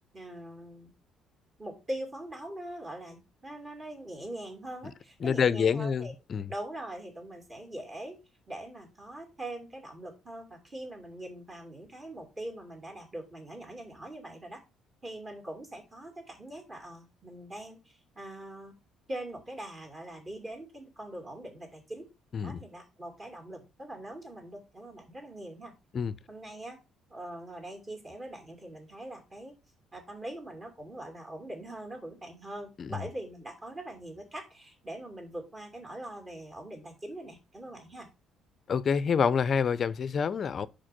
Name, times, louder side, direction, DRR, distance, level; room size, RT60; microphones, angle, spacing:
voice 1, 0.1-0.9 1.6-6.1 6.5-14.6 15.0-18.8 19.1-22.1 22.4-25.7 26.3-26.8 27.1-29.6 29.9-38.1, right 1 dB, 25° right, 2.6 m, -42 dB
voice 2, 5.2-6.5 22.3-22.6 25.9-26.1 32.8-33.0 38.7-40.7, left 6 dB, 40° left, 0.5 m, -27 dB
5.0 x 4.4 x 5.8 m
cardioid pair, 115°, 0 cm